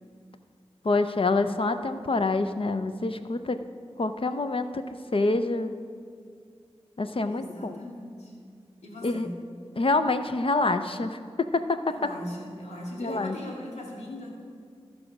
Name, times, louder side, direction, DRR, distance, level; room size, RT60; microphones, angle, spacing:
voice 1, 0.8-3.6 4.0-4.8 5.1-5.7 7.0-7.8 9.0-9.3 9.8-11.2 11.5-11.8 13.0-13.4, left 3 dB, 55° left, 9 dB, 0.6 m, -26 dB
voice 2, 7.3-8.3 8.8-9.3 11.9-14.3, left 1 dB, 90° left, -3 dB, 2.2 m, -39 dB
15.0 x 5.0 x 6.0 m, 2.3 s
cardioid pair, 40°, 11 cm